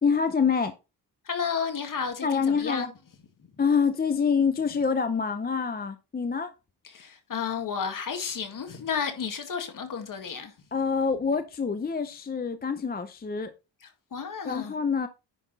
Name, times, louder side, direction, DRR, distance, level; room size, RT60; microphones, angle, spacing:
voice 1, 0.0-0.8 2.2-2.9 3.6-6.5 10.7-13.5 14.5-15.1, left 5 dB, 25° left, 0.6 m, -26 dB
voice 2, 1.2-2.9 3.4-3.5 6.8-10.6 13.8-14.7, left 6 dB, 50° left, 1.9 m, -32 dB
10.0 x 5.8 x 4.0 m
wide cardioid pair, 170°, 40 cm